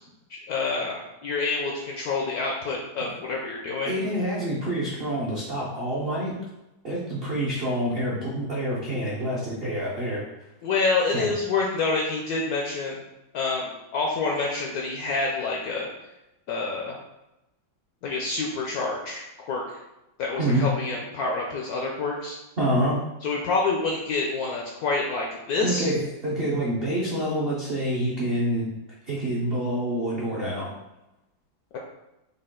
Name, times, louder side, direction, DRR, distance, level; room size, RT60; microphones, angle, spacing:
voice 1, 0.3-4.0 10.6-13.0 13.3-15.9 16.5-17.0 18.0-19.8 20.2-22.4 23.2-25.9, left 3 dB, 75° left, -1 dB, 0.8 m, -27 dB
voice 2, 3.8-6.3 6.8-10.2 11.1-11.2 20.4-20.7 22.6-23.0 25.6-28.7 29.1-30.7, right 1 dB, 70° right, -5 dB, 0.5 m, -27 dB
5.3 x 2.2 x 3.6 m, 0.95 s
omnidirectional pair, 2.1 m